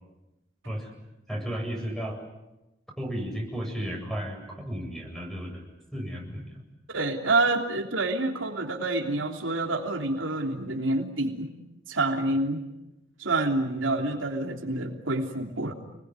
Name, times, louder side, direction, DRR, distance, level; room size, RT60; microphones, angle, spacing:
voice 1, 1.3-2.2 3.0-5.7 5.9-6.6, equal, ahead, 2 dB, 7.9 m, -34 dB
voice 2, 6.9-11.5 11.9-12.6 13.2-15.7, right 2 dB, 80° right, 3 dB, 3.3 m, -27 dB
29.5 x 20.5 x 9.8 m, 0.95 s
head